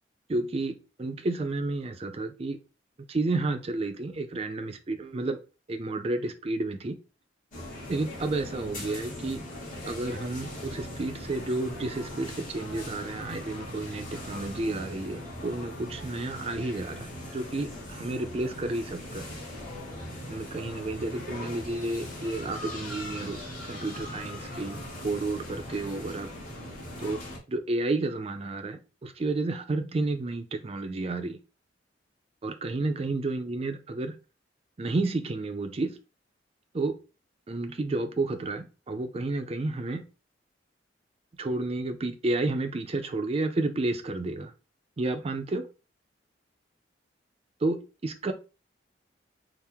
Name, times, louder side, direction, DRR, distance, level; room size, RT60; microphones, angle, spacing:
voice 1, 0.3-2.6 3.1-5.4 5.7-7.0 7.9-9.4 9.9-19.3 20.3-26.3 27.0-27.2 27.5-31.4 32.4-34.1 34.8-35.9 36.7-36.9 37.5-40.0 41.4-44.5 45.0-45.7 47.6-48.3, right 2 dB, 30° right, 0.4 m, -31 dB
sound 1, 7.5-27.4, left 1 dB, 45° left, 1.5 m, -40 dB
3.5 x 2.0 x 4.3 m
head